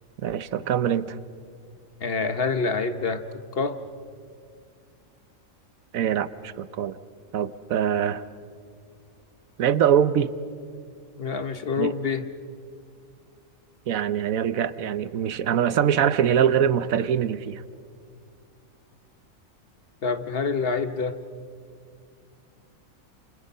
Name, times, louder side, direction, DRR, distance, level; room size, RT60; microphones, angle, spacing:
voice 1, 0.2-1.2 5.9-7.0 7.3-8.2 9.6-10.3 11.8-11.9 13.9-17.6, right 9 dB, 85° right, 15 dB, 1.2 m, -23 dB
voice 2, 2.0-3.2 3.5-3.8 11.2-12.3 20.0-21.2, left 4 dB, 50° left, 10 dB, 1.2 m, -26 dB
29.0 x 28.5 x 5.5 m, 2.2 s
omnidirectional pair, 1.4 m